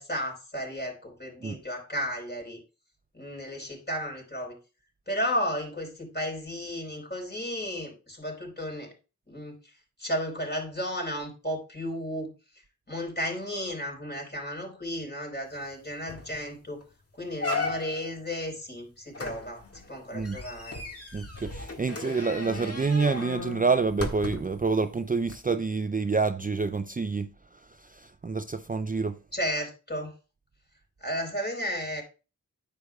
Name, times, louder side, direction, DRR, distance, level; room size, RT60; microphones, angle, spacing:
voice 1, 0.0-2.6 3.1-4.6 5.1-8.9 9.3-9.6 10.0-12.3 12.9-16.8 17.1-20.9 29.3-30.2 31.0-32.0, equal, 30° left, 4.3 m, -33 dB
sound 1, 15.6-15.7 16.1-16.4 16.8-16.9 17.4-18.1 19.1-24.6 25.2-25.3, left 3 dB, 50° left, 1.8 m, -35 dB
voice 2, 21.1-29.2, right 4 dB, 25° right, 0.5 m, -28 dB
9.4 x 8.0 x 2.3 m
wide cardioid pair, 50°, 32 cm